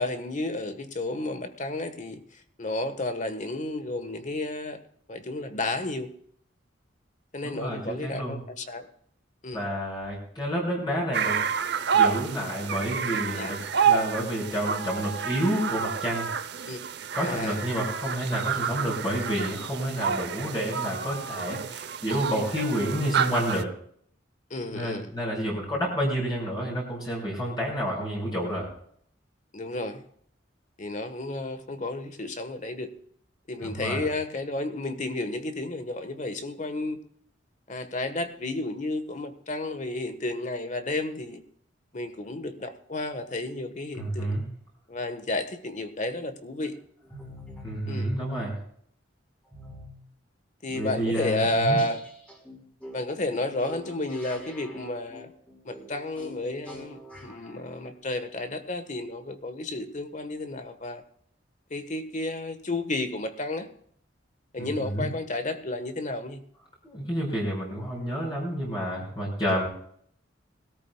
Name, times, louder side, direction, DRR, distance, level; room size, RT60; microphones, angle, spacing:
voice 1, 0.0-2.2 2.6-4.8 5.1-6.1 7.3-8.9 9.4-9.7 13.1-13.5 16.7-16.8 17.2-17.6 24.5-25.1 29.5-30.0 30.8-32.9 33.5-37.0 37.7-41.4 41.9-44.4 44.9-46.8 47.9-48.2 50.6-52.0 52.9-55.3 55.6-61.0 61.7-63.7 64.5-66.4, left 2 dB, 40° left, 9 dB, 1.4 m, -32 dB
voice 2, 7.4-8.4 9.5-11.4 11.9-16.3 17.1-23.7 24.7-28.7 33.6-34.1 44.0-44.4 47.6-48.6 50.7-51.8 64.6-65.1 66.8-69.7, equal, 25° left, -4 dB, 5.3 m, -29 dB
sound 1, 11.1-23.6, right 7 dB, 60° right, 0.7 m, -29 dB
sound 2, 47.0-47.8 49.5-50.0 50.7-50.8 51.1-51.2 51.4-57.6, left 1 dB, 5° left, 4.5 m, -45 dB
21.0 x 13.5 x 2.3 m, 0.62 s
head